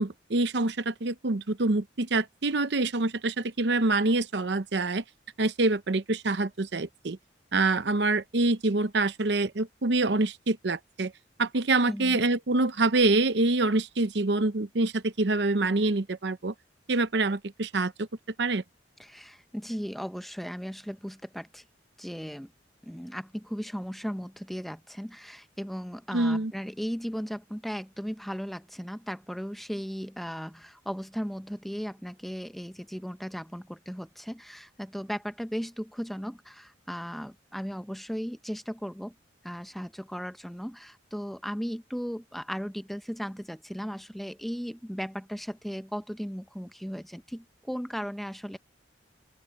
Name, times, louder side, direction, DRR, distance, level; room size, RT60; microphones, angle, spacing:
voice 1, 0.0-5.0 5.4-7.2 7.5-11.1 11.4-16.5 16.9-18.1 18.4-18.6 26.1-26.5, right 2 dB, 65° right, 0.8 m, -26 dB
voice 2, 11.9-12.2 19.0-21.6 22.0-22.5 22.8-39.1 39.4-48.6, equal, ahead, 0.7 m, -36 dB
open air
head